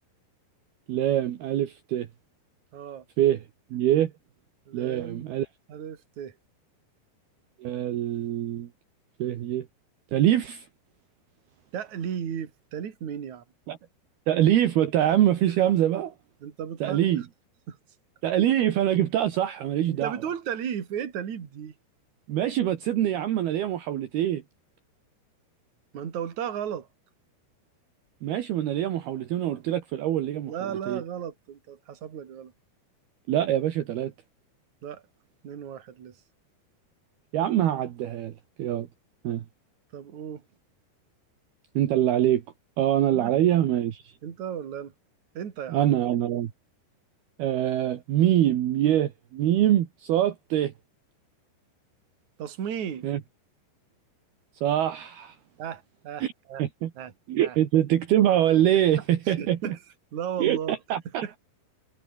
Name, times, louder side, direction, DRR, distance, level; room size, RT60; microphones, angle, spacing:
voice 1, 0.9-2.1 3.2-3.4 3.7-4.1 4.7-5.5 7.6-8.7 9.2-9.7 10.1-10.7 13.7-13.8 14.3-16.1 16.8-17.2 18.2-20.1 22.3-24.4 28.2-30.5 30.9-31.0 33.3-34.1 37.3-38.3 38.6-38.9 39.2-39.4 41.7-42.4 42.8-44.1 45.7-46.5 47.4-50.7 53.0-53.2 54.6-55.3 56.2-56.3 56.6-56.9 57.3-59.8 60.4-61.2, right 12 dB, 65° right, 3.4 m, -24 dB
voice 2, 2.7-3.1 4.7-5.3 5.7-6.3 11.7-13.4 16.4-17.1 17.7-17.8 19.9-21.7 25.9-26.9 30.4-32.5 34.8-35.0 35.4-36.1 39.9-40.4 43.1-43.3 44.2-44.9 45.4-45.9 52.4-53.1 55.6-56.6 57.0-57.1 57.4-57.6 59.0-59.8 60.1-60.8 61.2-61.4, right 8 dB, 45° right, 3.7 m, -35 dB
omnidirectional pair, 5.1 m